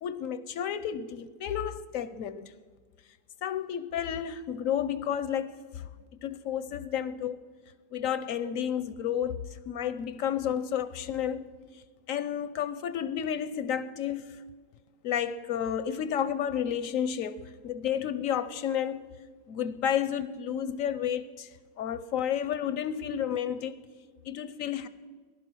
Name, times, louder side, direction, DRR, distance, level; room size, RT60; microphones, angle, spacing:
voice 1, 0.0-2.5 3.4-5.9 6.2-7.4 7.9-11.5 11.7-11.8 12.1-14.4 15.0-19.0 19.5-21.5 21.8-23.8 24.2-24.9, left 9 dB, 70° left, 0.8 m, -31 dB
19.5 x 12.0 x 6.1 m
omnidirectional pair, 1.9 m